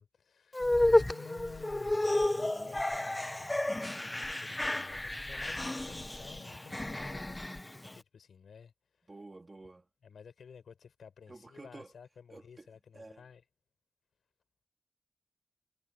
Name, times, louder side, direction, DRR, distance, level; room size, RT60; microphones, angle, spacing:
voice 1, 0.0-3.8 4.3-7.4 7.9-9.1 10.0-13.4, left 6 dB, 80° left, 5.1 m, -53 dB
sound 1, 0.5-7.9, left 1 dB, 15° left, 0.3 m, -31 dB
voice 2, 2.3-2.9 7.5-7.8 9.1-9.9 11.3-11.9 12.3-12.7 12.9-13.3, right 2 dB, 20° right, 2.7 m, -51 dB
wide cardioid pair, 165°, 0 cm